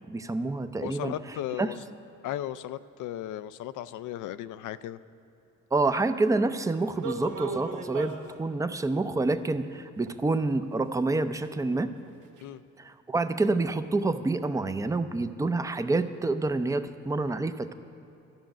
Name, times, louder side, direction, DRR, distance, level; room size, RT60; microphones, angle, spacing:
voice 1, 0.1-1.7 5.7-11.9 12.8-17.8, right 3 dB, 10° right, 10 dB, 0.5 m, -28 dB
voice 2, 0.8-1.8 2.2-5.0 12.4-12.6, left 12 dB, 80° left, 15 dB, 0.5 m, -36 dB
sound 1, 6.9-8.3 9.3-9.4 10.1-10.2 10.6-10.7 11.3-11.4 12.0-12.1 12.4-12.5, right 3 dB, 85° right, 1.1 m, -36 dB
12.0 x 6.0 x 8.9 m, 3.0 s
cardioid pair, 90°, 30 cm